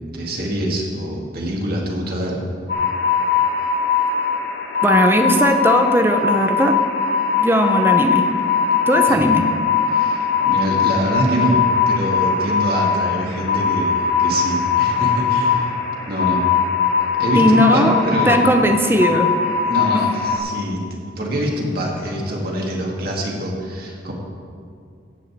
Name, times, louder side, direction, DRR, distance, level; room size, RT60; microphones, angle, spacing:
voice 1, 0.0-2.4 9.1-9.2 9.9-15.7 16.1-16.4 17.2-18.5 18.9-19.0 19.6-20.8 21.2-24.1, right 1 dB, 50° right, -2 dB, 2.4 m, -24 dB
sound 1, 2.7-20.4, left 6 dB, 65° left, 3.0 m, -20 dB
voice 2, 4.8-6.8 7.4-8.3 8.9-9.4 17.4-19.3 19.9-20.0, equal, 10° right, 5 dB, 0.8 m, -17 dB
14.5 x 5.6 x 8.5 m, 2.3 s
head